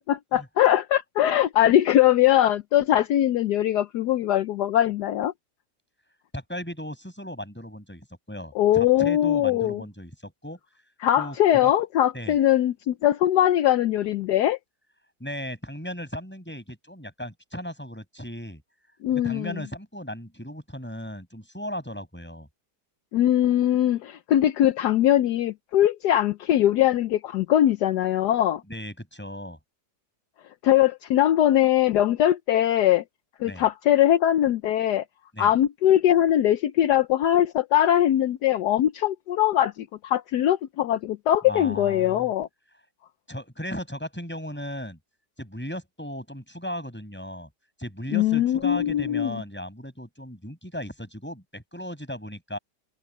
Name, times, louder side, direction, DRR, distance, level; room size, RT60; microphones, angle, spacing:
voice 1, 0.1-5.3 8.5-9.8 11.0-14.6 19.0-19.6 23.1-28.6 30.6-33.0 33.4-35.0 35.4-42.5 48.1-49.4, left 12 dB, 75° left, 1.2 m, -21 dB
voice 2, 6.3-10.6 11.2-11.4 11.6-11.7 12.1-12.4 15.2-18.6 19.1-22.5 28.7-29.6 33.5-33.7 35.3-35.5 41.5-42.3 43.3-45.0 45.4-47.5 47.8-52.6, equal, 5° left, 7.3 m, -36 dB
omnidirectional pair, 1.8 m